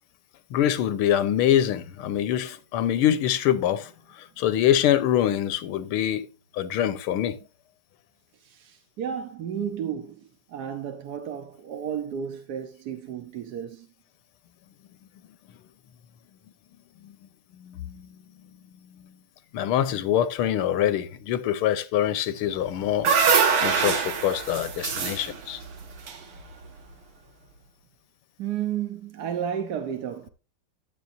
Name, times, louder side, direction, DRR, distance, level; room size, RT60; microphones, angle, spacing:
voice 1, 0.5-3.9 4.2-6.3 6.6-7.4 17.0-17.1 17.6-18.0 19.5-23.1 23.6-25.6, left 11 dB, 85° left, 1.7 m, -24 dB
voice 2, 8.4-13.9 25.0-25.1 28.4-30.3, right 8 dB, 60° right, 1.1 m, -33 dB
sound 1, 22.6-26.8, right 6 dB, 80° right, 2.3 m, -24 dB
12.5 x 8.0 x 2.6 m
omnidirectional pair, 2.4 m